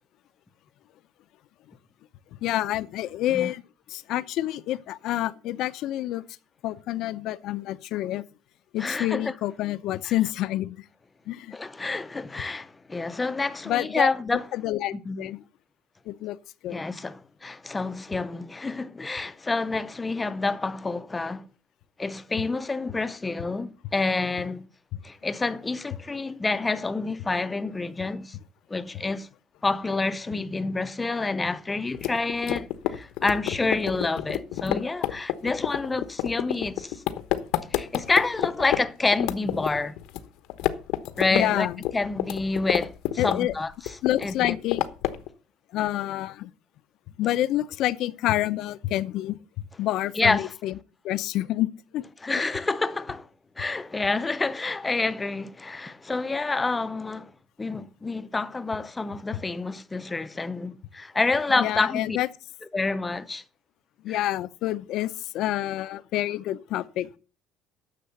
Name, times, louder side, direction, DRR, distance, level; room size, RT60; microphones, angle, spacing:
voice 1, 2.4-3.6 3.9-6.2 6.6-8.2 8.7-10.8 11.3-11.5 13.7-14.1 14.5-15.4 16.1-16.4 16.6-16.8 24.9-25.0 41.3-41.8 43.2-43.5 44.0-44.8 45.7-46.5 47.2-49.4 49.8-50.7 51.0-51.7 51.9-52.1 61.6-62.3 64.0-67.1, left 14 dB, 55° left, 0.7 m, -28 dB
voice 2, 8.8-9.3 11.5-14.5 15.0-15.3 16.7-21.5 22.0-24.7 25.0-28.4 28.7-29.3 29.6-37.0 37.7-39.9 41.2-41.7 41.9-42.9 43.2-43.7 44.2-44.5 50.1-50.5 52.2-53.3 53.6-57.3 57.6-62.2 62.7-63.4 64.1-64.3, left 3 dB, 10° left, 0.6 m, -28 dB
sound 1, 31.9-38.8 39.1-40.2 40.5-41.4 41.7-43.6 43.9-45.3, left 14 dB, 75° left, 1.1 m, -28 dB
10.0 x 6.9 x 6.9 m
cardioid pair, 165°, 0 cm